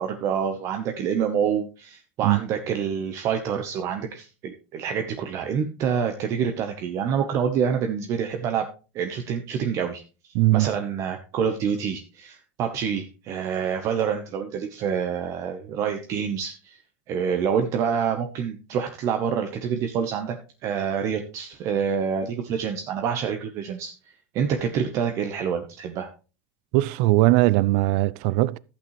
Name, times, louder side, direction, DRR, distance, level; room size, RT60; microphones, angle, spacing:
voice 1, 0.0-8.7 8.9-10.0 10.5-16.8 17.1-20.4 20.6-26.1, right 7 dB, 45° right, 0.9 m, -27 dB
voice 2, 10.3-10.7 26.7-28.6, right 18 dB, 65° right, 0.4 m, -20 dB
11.5 x 8.5 x 3.1 m
supercardioid pair, 130°, 7 cm